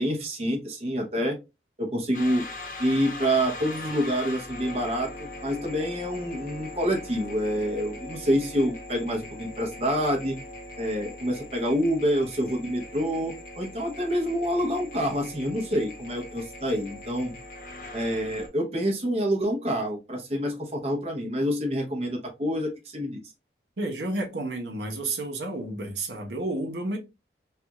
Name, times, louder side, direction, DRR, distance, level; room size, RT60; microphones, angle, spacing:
voice 1, 0.0-1.4 1.8-2.4 2.8-10.4 10.8-17.4 17.9-23.2, equal, 35° right, 0.8 m, -27 dB
sound 1, 2.1-18.5, left 1 dB, 50° left, 0.8 m, -41 dB
voice 2, 23.8-27.0, right 2 dB, 80° right, 0.9 m, -31 dB
3.3 x 2.4 x 2.9 m
head